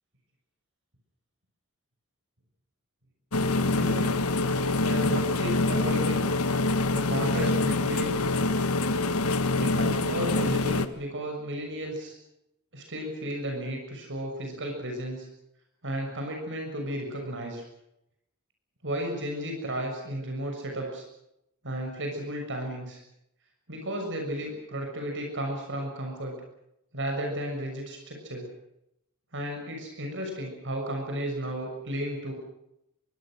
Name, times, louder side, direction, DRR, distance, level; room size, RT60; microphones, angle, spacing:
sound 1, 3.3-10.9, left 2 dB, 75° left, 1.6 m, -25 dB
voice 1, 3.7-4.2 4.8-6.3 6.9-8.2 9.6-12.1 12.7-15.3 15.8-17.6 18.8-21.0 21.6-23.0 23.7-26.3 26.9-28.5 29.3-32.3, right 1 dB, 55° right, 2 dB, 6.6 m, -33 dB
24.5 x 23.5 x 6.4 m, 0.82 s
head